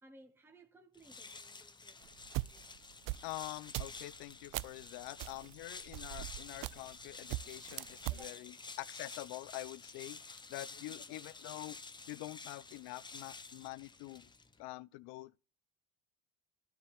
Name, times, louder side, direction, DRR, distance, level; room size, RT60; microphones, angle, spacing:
voice 1, 0.0-2.7 8.1-8.4 10.9-11.1, right 1 dB, 5° right, 1.1 m, -61 dB
sound 1, 0.9-14.6, left 4 dB, 10° left, 0.7 m, -51 dB
sound 2, 2.0-4.8 5.2-7.0 7.3-8.3, right 20 dB, 55° right, 0.4 m, -41 dB
voice 2, 3.2-8.5 8.8-10.2 10.5-11.8 12.1-14.3 14.6-15.4, left 19 dB, 70° left, 0.6 m, -46 dB
13.0 x 5.1 x 7.3 m
cardioid pair, 150°, 40 cm